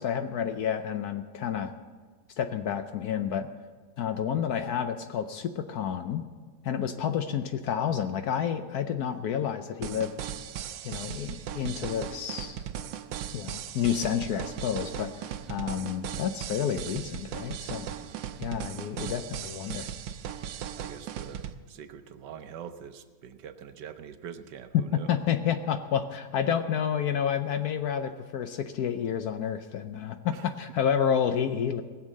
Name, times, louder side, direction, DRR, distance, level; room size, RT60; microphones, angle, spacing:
voice 1, 0.0-1.7 2.4-3.5 4.0-6.2 6.6-10.1 10.8-12.6 13.3-17.9 18.4-19.9 24.7-24.8 25.1-31.8, left 8 dB, 65° left, 9 dB, 1.0 m, -30 dB
sound 1, 9.8-21.5, right 9 dB, 90° right, 1.4 m, -38 dB
voice 2, 18.0-18.3 20.7-25.1 30.3-30.5, right 8 dB, 70° right, 10 dB, 1.3 m, -44 dB
18.5 x 7.3 x 7.5 m, 1.5 s
omnidirectional pair, 2.0 m